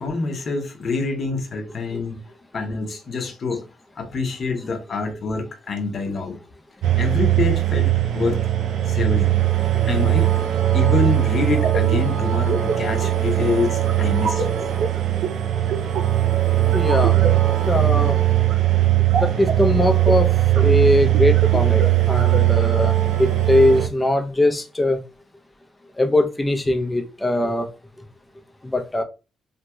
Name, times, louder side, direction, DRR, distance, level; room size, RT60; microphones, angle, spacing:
voice 1, 0.0-3.7 3.9-6.4 7.0-8.5 8.9-9.4 9.9-10.4 10.7-14.5, left 4 dB, 50° left, 0.8 m, -26 dB
sound 1, 6.8-23.9, right 13 dB, 80° right, 0.4 m, -19 dB
voice 2, 16.6-17.3 17.6-18.2 19.1-20.3 20.5-25.0 26.0-27.7 28.6-29.0, left 1 dB, 15° left, 0.5 m, -21 dB
3.0 x 2.8 x 2.2 m
cardioid pair, 90°, 0 cm